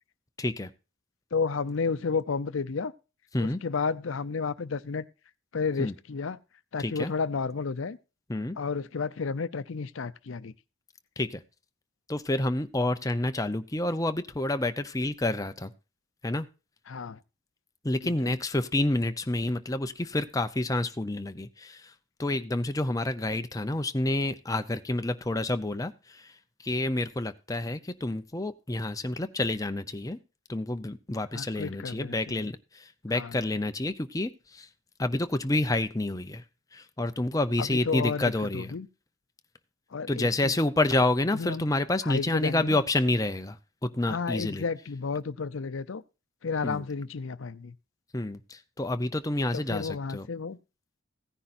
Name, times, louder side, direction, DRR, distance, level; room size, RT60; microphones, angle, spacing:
voice 1, 0.4-0.7 3.3-3.6 5.8-5.9 6.8-7.1 8.3-8.6 11.2-11.4 12.1-15.7 16.2-16.5 17.8-21.9 22.2-26.3 26.6-30.2 30.5-34.7 35.0-36.4 36.7-38.8 40.1-44.6 46.6-46.8 48.1-50.3, left 2 dB, 15° left, 0.6 m, -29 dB
voice 2, 1.3-2.9 3.4-5.1 5.5-6.4 6.7-8.0 8.6-10.5 16.9-17.2 18.0-18.4 31.3-32.5 33.1-33.4 37.6-38.9 39.9-40.5 41.3-41.7 42.0-42.8 44.1-46.0 46.4-47.7 49.5-50.6, left 5 dB, 70° left, 0.6 m, -32 dB
16.0 x 10.0 x 2.6 m
head